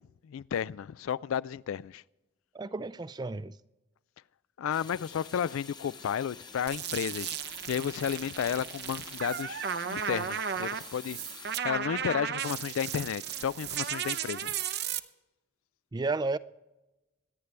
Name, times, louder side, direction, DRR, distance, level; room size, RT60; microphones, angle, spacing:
voice 1, 0.2-2.0 4.6-14.5, left 8 dB, 90° left, 0.3 m, -33 dB
voice 2, 2.5-3.6 15.9-16.4, right 3 dB, 20° right, 0.3 m, -32 dB
sound 1, 4.7-11.6, left 5 dB, 20° left, 0.8 m, -48 dB
sound 2, 6.7-15.0, right 8 dB, 55° right, 0.6 m, -35 dB
25.0 x 9.6 x 3.3 m
head